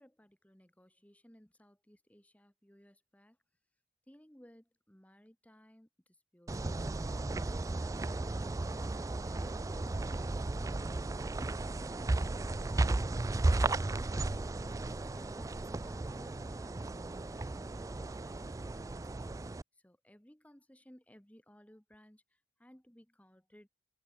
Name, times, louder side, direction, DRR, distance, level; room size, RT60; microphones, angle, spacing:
voice 1, 0.0-3.4 4.1-5.9 6.3-6.6 7.1-11.4 13.5-14.8 15.1-19.5 19.8-22.2 22.6-23.7, equal, 10° left, 1.5 m, -60 dB
sound 1, 6.5-19.6, right 2 dB, 20° right, 0.3 m, -35 dB
open air
head